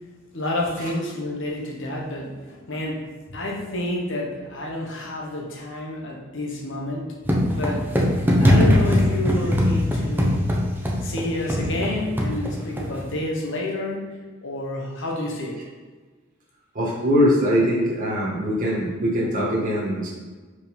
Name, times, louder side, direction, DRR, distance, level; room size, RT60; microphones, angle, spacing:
voice 1, 0.3-7.1 7.5-7.9 8.4-10.5 11.0-15.6, left 1 dB, 65° left, -1 dB, 1.2 m, -29 dB
sound 1, 7.2-13.1, left 1 dB, 10° right, 0.9 m, -21 dB
voice 2, 16.7-20.1, equal, 40° right, -5 dB, 1.7 m, -22 dB
5.1 x 4.7 x 5.3 m, 1.3 s
head